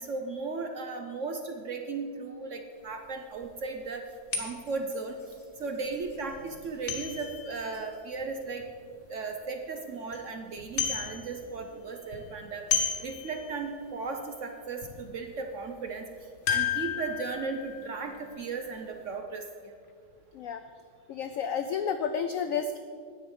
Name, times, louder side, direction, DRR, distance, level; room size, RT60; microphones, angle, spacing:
voice 1, 0.0-4.1 4.4-5.2 5.6-8.6 9.1-16.0 16.5-19.7, right 4 dB, 60° right, 4 dB, 0.8 m, -36 dB
sound 1, 2.8-2.9 3.4-3.5 4.3-9.0 9.5-9.6 9.9-10.2 10.5-11.6 11.9-13.9 14.3-14.4 14.8-15.0 16.5-18.9 19.1-19.2, left 7 dB, 40° left, 1.3 m, -34 dB
voice 2, 21.1-22.8, left 6 dB, 90° left, 8 dB, 0.7 m, -31 dB
10.0 x 8.6 x 5.4 m, 2.2 s
omnidirectional pair, 1.9 m